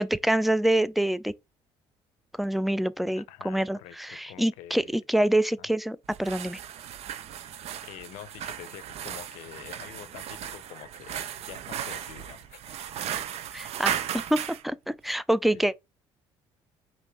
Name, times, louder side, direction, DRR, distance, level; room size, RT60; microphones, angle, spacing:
voice 1, 0.0-1.3 2.4-6.6 13.5-15.8, right 1 dB, ahead, 0.3 m, -26 dB
voice 2, 3.2-5.0 5.6-5.7 7.8-12.8 15.5-15.6, left 13 dB, 80° left, 0.6 m, -46 dB
sound 1, 6.1-14.6, right 10 dB, 60° right, 0.6 m, -36 dB
5.0 x 2.6 x 3.3 m
supercardioid pair, 80°, 12 cm